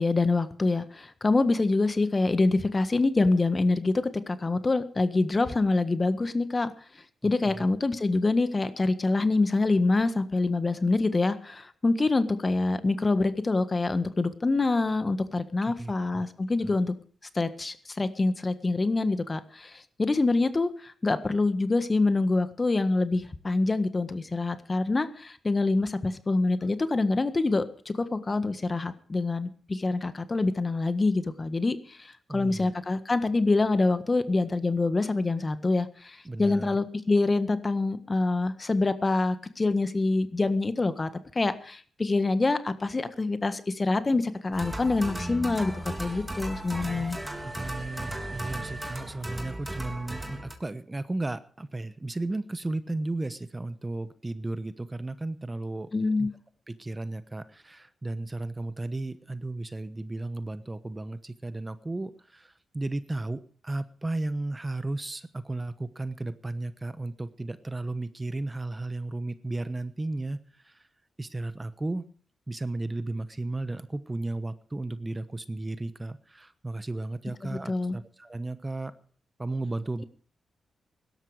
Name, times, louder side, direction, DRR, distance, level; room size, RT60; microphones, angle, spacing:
voice 1, 0.0-6.7 7.2-17.0 17.3-47.2 55.9-56.3 77.5-78.0, left 3 dB, 35° left, 12 dB, 1.5 m, -26 dB
voice 2, 7.2-7.7 15.3-15.4 15.8-16.2 16.6-16.7 32.3-32.7 36.2-36.8 47.0-47.1 47.4-55.9 56.2-56.3 56.7-70.9 71.2-72.1 72.5-78.9 79.4-80.0, right 2 dB, 25° right, 13 dB, 1.1 m, -34 dB
sound 1, 44.5-50.5, right 1 dB, 5° right, 3.4 m, -36 dB
17.0 x 12.5 x 5.0 m, 0.44 s
supercardioid pair, 55°, 0 cm